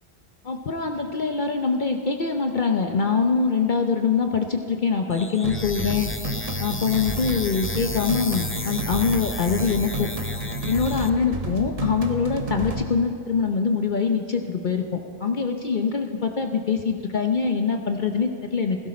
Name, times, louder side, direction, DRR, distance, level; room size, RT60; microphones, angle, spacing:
voice 1, 0.4-6.1 6.6-10.1 10.7-18.8, left 5 dB, 50° left, 4 dB, 0.9 m, -24 dB
sound 1, 5.1-11.1, left 3 dB, 20° left, 0.3 m, -34 dB
sound 2, 5.4-12.8, right 1 dB, 35° right, 1.0 m, -31 dB
16.5 x 16.0 x 4.3 m, 2.5 s
omnidirectional pair, 1.1 m